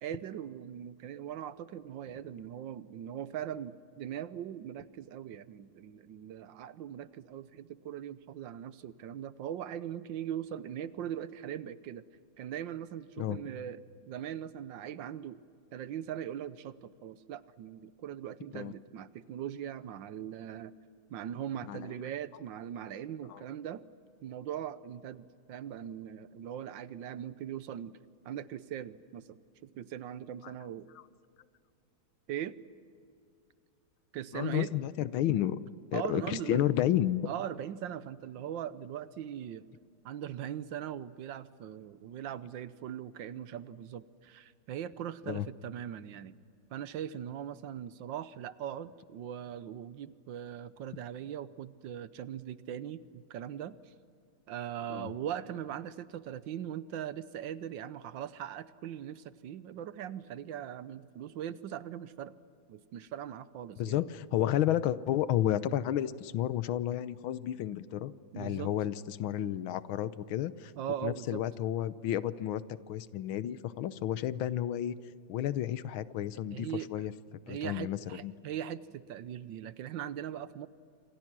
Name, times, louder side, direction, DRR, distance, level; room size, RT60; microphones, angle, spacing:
voice 1, 0.0-12.1 12.4-13.8 14.1-15.4 15.7-20.7 21.1-23.8 24.2-28.0 28.2-30.9 32.3-32.6 34.1-34.7 35.9-36.6 37.3-39.6 40.0-46.3 46.7-53.9 54.5-62.3 62.7-64.0 68.3-68.7 70.8-71.4 76.5-77.1 77.5-80.7, right 10 dB, 75° right, 15 dB, 1.4 m, -40 dB
voice 2, 21.6-21.9 23.3-23.4 34.3-35.6 35.9-37.3 45.3-45.5 54.9-55.1 63.8-70.7 71.0-72.6 72.9-75.0 75.3-77.1 77.5-78.3, left 12 dB, 85° left, 15 dB, 1.6 m, -31 dB
27.5 x 27.0 x 6.1 m, 2.4 s
omnidirectional pair, 2.2 m